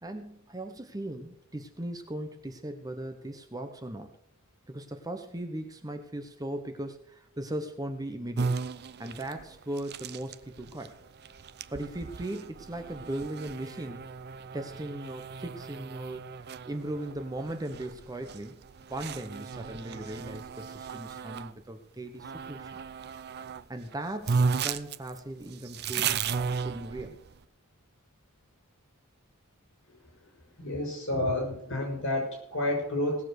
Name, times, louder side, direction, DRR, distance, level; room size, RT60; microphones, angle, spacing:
voice 1, 0.0-4.1 4.7-8.5 9.0-10.9 11.7-14.0 14.5-16.3 16.7-18.6 18.9-22.7 23.7-27.2, right 1 dB, 15° right, 6 dB, 1.0 m, -38 dB
sound 1, 8.4-21.5 22.2-23.6 23.9-24.0 24.2-27.4, right 5 dB, 50° right, 0.5 m, -35 dB
voice 2, 30.6-33.2, left 1 dB, 60° left, 2 dB, 6.2 m, -30 dB
18.0 x 7.2 x 6.5 m, 0.69 s
head